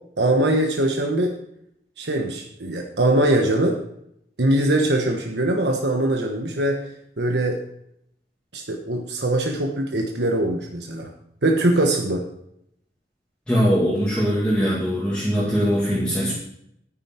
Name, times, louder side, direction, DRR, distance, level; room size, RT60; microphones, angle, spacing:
voice 1, 0.2-1.4 2.0-3.8 4.4-6.9 7.2-7.6 8.5-11.1 11.4-12.2, right 1 dB, 80° right, 2 dB, 1.2 m, -22 dB
voice 2, 13.5-16.3, equal, 5° left, -7 dB, 2.1 m, -21 dB
10.0 x 9.7 x 4.4 m, 0.75 s
head